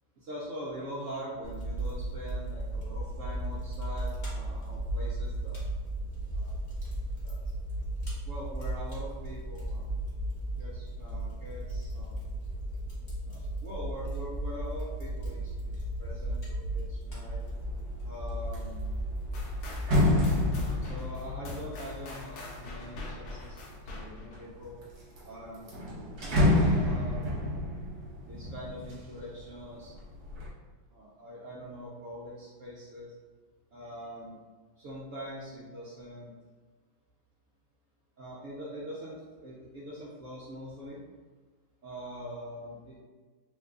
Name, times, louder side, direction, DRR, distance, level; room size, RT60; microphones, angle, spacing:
voice 1, 0.2-5.6 6.3-6.6 7.2-7.4 8.2-10.0 10.5-12.2 13.2-17.4 18.0-18.8 20.8-24.8 25.2-25.7 26.3-27.5 28.2-30.0 30.9-33.1 33.7-34.4 34.8-36.3 38.2-41.0 41.8-43.0, equal, 75° right, -6 dB, 0.7 m, -43 dB
Fire, 1.4-20.7, right 1 dB, 35° left, 0.7 m, -35 dB
sound 1, 17.4-17.8 18.2-23.5 24.1-24.8 25.2-25.3 25.5-29.5 29.9-30.5, left 1 dB, 60° right, 1.3 m, -29 dB
sound 2, 19.3-24.5, left 1 dB, 65° left, 1.1 m, -43 dB
3.2 x 2.3 x 3.6 m, 1.4 s
omnidirectional pair, 2.1 m